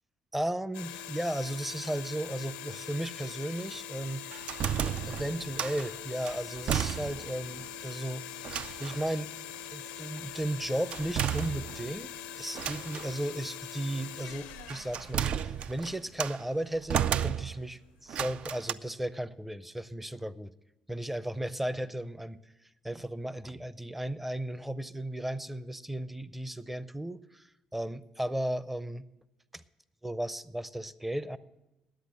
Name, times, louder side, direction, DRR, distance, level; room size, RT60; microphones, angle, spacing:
voice 1, 0.3-4.3 5.0-9.3 9.7-20.5 20.9-22.4 22.8-29.1 29.5-29.6 30.0-31.4, right 1 dB, 10° right, 16 dB, 0.5 m, -35 dB
sound 1, 0.7-16.0, left 9 dB, 90° left, 0.5 m, -43 dB
sound 2, 4.3-5.9 6.2-7.4 7.7-7.8 8.4-9.1 10.9-12.0 12.5-13.1 14.3-16.4 16.9-17.7 18.1-18.7, right 9 dB, 60° right, 0.3 m, -33 dB
10.5 x 8.1 x 7.6 m, 0.95 s
supercardioid pair, 65°, 2 cm